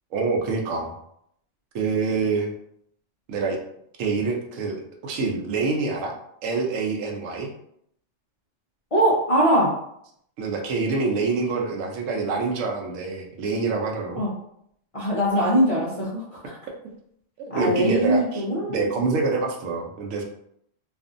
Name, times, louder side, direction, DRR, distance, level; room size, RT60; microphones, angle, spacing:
voice 1, 0.1-0.9 1.7-2.5 3.3-3.6 4.0-6.1 6.4-7.5 10.4-14.2 17.4-18.4 18.7-20.2, right 4 dB, 85° right, 1 dB, 1.0 m, -26 dB
voice 2, 8.9-9.7 14.2-14.3 14.9-16.6 17.5-18.9, equal, 45° left, -7 dB, 0.5 m, -22 dB
2.5 x 2.5 x 2.5 m, 0.72 s
omnidirectional pair, 1.3 m